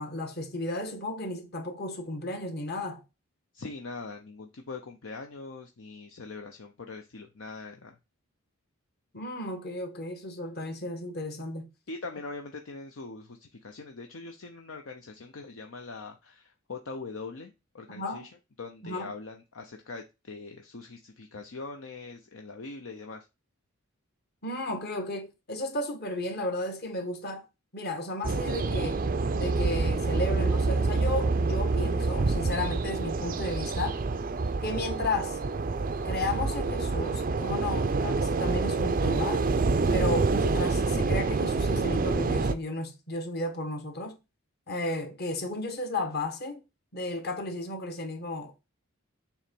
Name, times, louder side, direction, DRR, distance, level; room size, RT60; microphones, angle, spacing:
voice 1, 0.0-3.0 9.1-11.7 17.9-18.3 18.8-19.1 24.4-27.4 27.7-29.0 29.3-34.0 34.6-35.4 36.0-39.4 39.9-44.2 44.7-46.6 46.9-48.5, left 2 dB, 45° left, 1.4 m, -34 dB
voice 2, 3.5-8.0 11.9-18.3 18.6-23.3, left 3 dB, 65° left, 0.7 m, -42 dB
sound 1, 28.2-42.5, right 3 dB, 40° right, 0.5 m, -27 dB
7.1 x 3.0 x 5.2 m
head